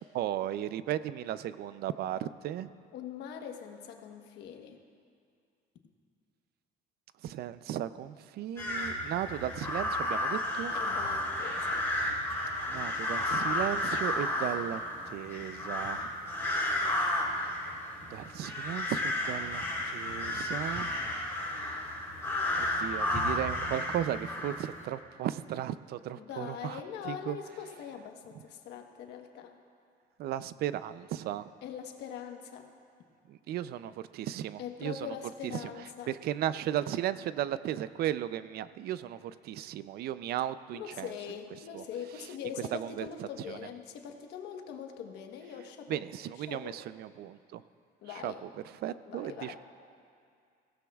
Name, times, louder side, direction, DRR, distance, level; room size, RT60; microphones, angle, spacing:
voice 1, 0.0-2.7 7.2-10.7 12.7-16.1 18.1-20.9 22.6-27.4 30.2-31.5 33.3-35.2 35.4-35.7 36.1-41.1 41.7-41.8 42.7-43.6 45.9-47.6 48.2-48.5 48.8-49.6, right 12 dB, 70° right, 14 dB, 0.5 m, -35 dB
voice 2, 2.9-4.8 10.7-11.8 26.2-29.6 31.6-32.7 34.6-36.1 40.7-46.0 46.5-46.8 48.0-48.4 49.0-49.6, left 8 dB, 80° left, 4 dB, 1.2 m, -42 dB
sound 1, 8.6-24.8, left 1 dB, 15° left, 3.5 m, -32 dB
22.0 x 16.5 x 2.4 m, 2.3 s
cardioid pair, 110°, 17 cm